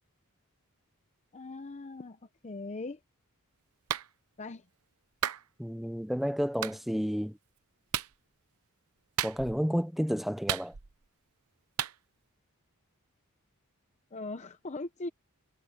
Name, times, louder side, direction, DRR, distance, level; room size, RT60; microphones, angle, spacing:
voice 1, 1.3-2.2 2.4-3.0 4.4-4.6 14.1-15.1, left 2 dB, 30° left, 0.7 m, -39 dB
Clapping, 3.9-4.1 5.2-5.4 6.6-6.8 7.9-8.1 9.2-9.6 10.5-11.0 11.8-12.0, right 10 dB, 85° right, 0.8 m, -33 dB
voice 2, 5.6-7.4 9.2-10.7, equal, ahead, 0.6 m, -31 dB
head